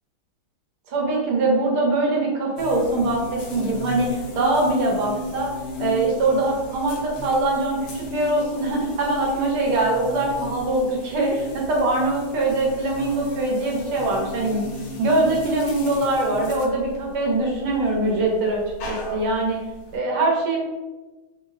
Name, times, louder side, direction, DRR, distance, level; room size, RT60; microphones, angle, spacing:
voice 1, 0.9-5.5 5.8-14.7 15.0-19.6 19.9-20.6, right 2 dB, 85° right, -1 dB, 1.7 m, -23 dB
sound 1, 2.6-20.0, equal, 70° left, 0.9 m, -35 dB
3.8 x 2.1 x 3.5 m, 1.2 s
omnidirectional pair, 2.3 m